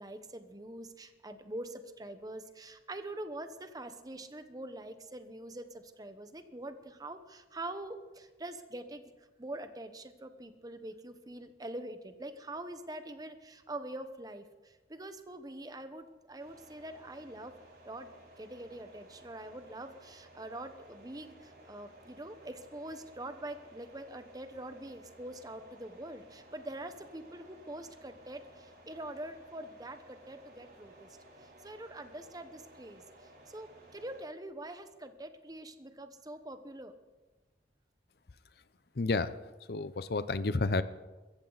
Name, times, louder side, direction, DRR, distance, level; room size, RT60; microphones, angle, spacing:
voice 1, 0.0-9.1 9.4-31.1 31.4-33.0 33.5-36.9, right 1 dB, 20° right, 9 dB, 1.0 m, -44 dB
sound 1, 16.4-34.2, right 1 dB, 60° right, 5.4 m, -57 dB
voice 2, 38.9-39.4 39.7-40.8, left 3 dB, 60° left, 14 dB, 0.7 m, -30 dB
23.5 x 14.5 x 4.1 m, 1.2 s
head